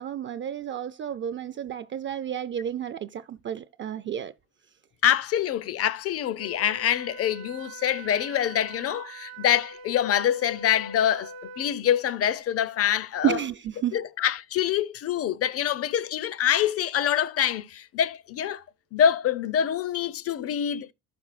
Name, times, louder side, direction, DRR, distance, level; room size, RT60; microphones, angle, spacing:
voice 1, 0.0-4.3 13.2-14.0, right 10 dB, 35° right, 0.4 m, -31 dB
voice 2, 5.0-13.4 13.9-18.6 18.9-20.9, left 10 dB, 45° left, 0.6 m, -25 dB
Wind instrument woodwind instrument, 6.4-11.8, right 3 dB, 85° right, 0.7 m, -43 dB
14.0 x 6.0 x 2.4 m
cardioid pair, 110°, 33 cm